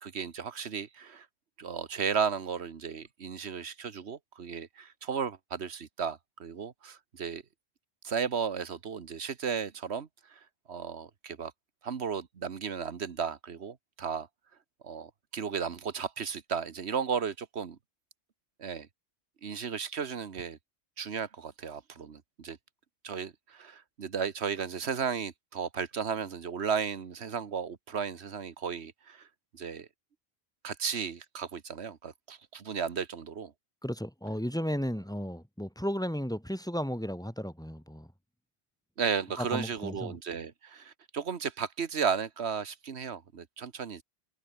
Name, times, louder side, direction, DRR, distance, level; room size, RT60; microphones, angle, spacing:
voice 1, 0.0-1.3 1.6-7.4 8.0-10.4 10.7-11.5 11.8-14.3 14.8-17.8 18.6-18.9 19.4-20.6 21.0-22.6 23.0-29.3 29.5-29.9 30.6-33.5 39.0-44.0, right 6 dB, 75° right, 1.6 m, -34 dB
voice 2, 33.8-38.1 39.4-40.2, equal, 5° left, 2.7 m, -34 dB
omnidirectional pair, 1.1 m